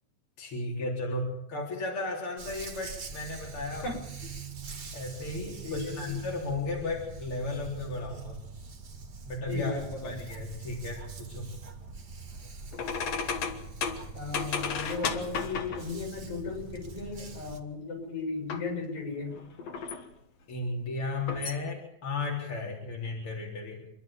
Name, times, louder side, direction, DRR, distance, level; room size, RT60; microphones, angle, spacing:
voice 1, 0.4-3.8 4.9-8.4 9.3-9.7 10.0-11.5 20.5-23.9, left 2 dB, 45° left, -1 dB, 4.8 m, -34 dB
Dog, 2.4-17.6, right 5 dB, 40° right, 2.2 m, -43 dB
voice 2, 5.6-6.1 9.5-10.2 14.1-19.4, left 4 dB, 80° left, 3 dB, 8.5 m, -36 dB
sound 1, 12.7-16.0 18.5-18.7 19.2-20.1 21.1-21.6, left 6 dB, 60° left, 2.5 m, -34 dB
27.5 x 12.0 x 9.1 m, 0.74 s
omnidirectional pair, 3.3 m